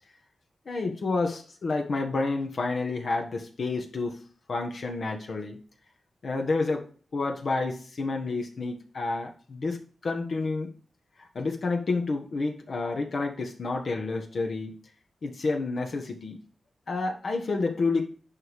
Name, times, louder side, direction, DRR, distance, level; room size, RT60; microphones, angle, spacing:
voice 1, 0.6-4.2 4.5-5.6 6.2-10.7 11.3-14.7 15.2-16.4 16.9-18.1, left 3 dB, 55° left, 2 dB, 1.4 m, -29 dB
10.5 x 3.6 x 4.7 m, 0.41 s
wide cardioid pair, 140°, 0 cm